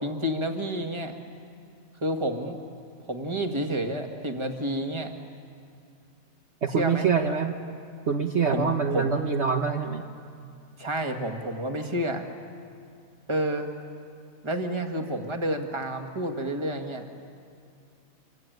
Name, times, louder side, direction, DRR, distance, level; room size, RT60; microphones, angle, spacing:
voice 1, 0.0-1.2 2.0-2.6 3.1-5.1 6.8-7.1 8.5-9.1 10.8-12.3 13.3-13.7 14.4-17.2, right 1 dB, 20° right, 4 dB, 1.8 m, -29 dB
voice 2, 6.6-7.6 8.1-10.0, right 6 dB, 55° right, 4 dB, 1.4 m, -25 dB
27.0 x 23.5 x 9.3 m, 2.3 s
omnidirectional pair, 1.5 m